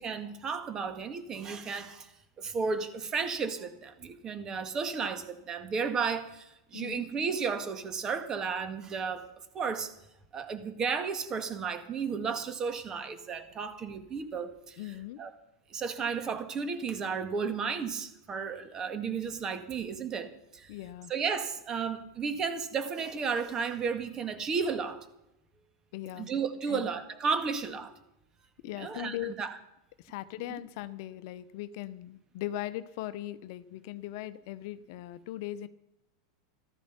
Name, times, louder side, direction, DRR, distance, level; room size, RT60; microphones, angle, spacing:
voice 1, 0.0-2.1 2.4-9.3 9.5-9.9 10.3-14.8 15.2-15.3 15.7-20.7 21.1-25.0 26.2-27.9 28.8-29.6, right 5 dB, 30° right, 1.9 m, -33 dB
voice 2, 6.7-7.1 14.8-15.2 20.7-21.1 25.9-26.3 26.7-26.9 28.6-29.4 30.0-35.7, left 13 dB, 60° left, 0.8 m, -39 dB
14.5 x 12.5 x 5.9 m
hypercardioid pair, 105°, 2 cm